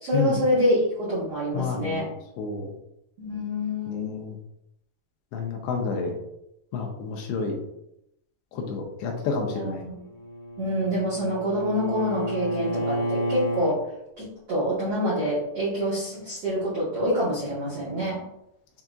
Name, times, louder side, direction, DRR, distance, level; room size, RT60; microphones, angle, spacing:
voice 1, 0.0-2.1 3.2-4.1 9.5-9.9 10.6-13.8 14.2-18.2, equal, 65° right, -10 dB, 1.5 m, -26 dB
voice 2, 1.5-2.1 2.4-2.7 3.9-4.4 5.3-6.2 6.7-7.6 8.5-9.8, left 5 dB, 80° left, 1 dB, 2.5 m, -29 dB
Bowed string instrument, 10.0-13.8, equal, 60° left, 1.6 m, -30 dB
7.7 x 2.8 x 2.4 m, 0.80 s
omnidirectional pair, 5.0 m